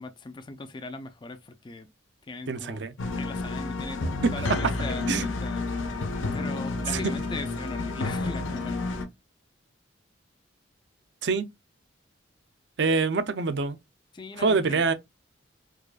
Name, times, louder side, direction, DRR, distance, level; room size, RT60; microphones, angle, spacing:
voice 1, 0.0-1.9 2.3-2.8 3.1-4.0 4.3-5.6 6.3-8.8 14.1-14.8, left 3 dB, 25° left, 0.4 m, -39 dB
voice 2, 2.5-2.9 4.3-4.4 5.1-5.2 6.9-7.0 11.2-11.5 12.8-13.8 14.4-14.9, right 4 dB, 60° right, 0.5 m, -25 dB
sound 1, 3.0-9.1, left 3 dB, 80° left, 0.7 m, -30 dB
4.8 x 2.3 x 2.3 m
head